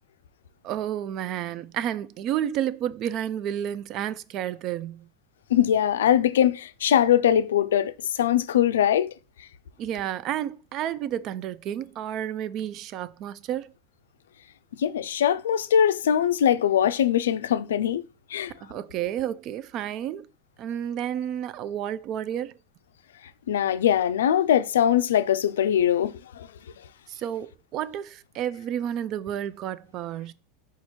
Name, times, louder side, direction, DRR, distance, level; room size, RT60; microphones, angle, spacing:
voice 1, 0.6-5.1 9.8-13.7 18.5-20.3 20.6-22.5 27.1-30.3, right 10 dB, 45° right, 0.3 m, -31 dB
voice 2, 5.5-9.1 14.8-18.0 18.3-18.5 23.5-26.5, left 10 dB, 85° left, 0.3 m, -22 dB
4.3 x 2.4 x 4.3 m
hypercardioid pair, 110°, 0 cm